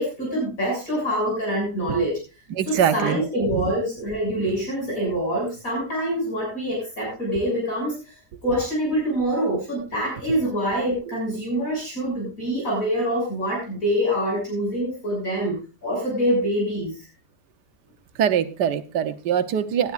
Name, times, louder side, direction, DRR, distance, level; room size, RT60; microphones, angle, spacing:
voice 1, 0.0-2.2 2.7-8.0 8.4-15.6 15.8-16.9, equal, 55° left, -2 dB, 7.4 m, -25 dB
voice 2, 2.5-3.2 18.2-19.9, right 9 dB, 90° right, 11 dB, 1.5 m, -23 dB
18.5 x 12.0 x 2.5 m, 0.31 s
omnidirectional pair, 1.8 m